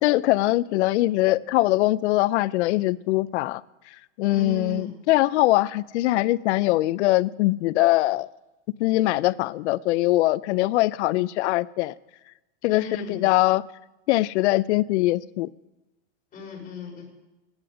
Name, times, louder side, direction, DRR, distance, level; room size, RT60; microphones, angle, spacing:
voice 1, 0.0-3.6 4.2-8.3 8.8-11.9 12.6-13.6 14.1-15.5, left 18 dB, 70° left, 0.5 m, -22 dB
voice 2, 4.3-4.9 12.7-13.3 16.3-17.0, left 1 dB, 25° left, 4.3 m, -36 dB
19.5 x 9.8 x 5.0 m
supercardioid pair, 155°, 36 cm